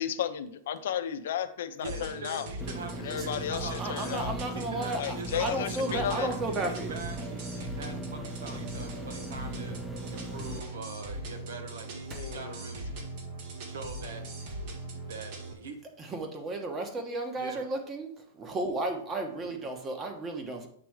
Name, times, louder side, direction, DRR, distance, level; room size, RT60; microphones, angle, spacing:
voice 1, 0.0-2.5 3.0-4.3 5.0-6.4 12.1-12.6, left 9 dB, 75° left, 10 dB, 0.6 m, -34 dB
sound 1, 1.8-15.5, right 1 dB, 55° right, 1.6 m, -40 dB
voice 2, 1.8-4.0 4.5-9.8 10.1-13.0 13.6-14.2 15.1-15.9 17.3-17.7, right 3 dB, 85° right, 5 dB, 1.3 m, -43 dB
sound 2, 2.6-10.6, right 2 dB, ahead, 0.5 m, -39 dB
voice 3, 3.8-7.0 12.1-12.2 16.0-20.7, right 2 dB, 20° right, 4 dB, 1.2 m, -34 dB
8.1 x 3.4 x 4.8 m, 0.62 s
hypercardioid pair, 135°, 0 cm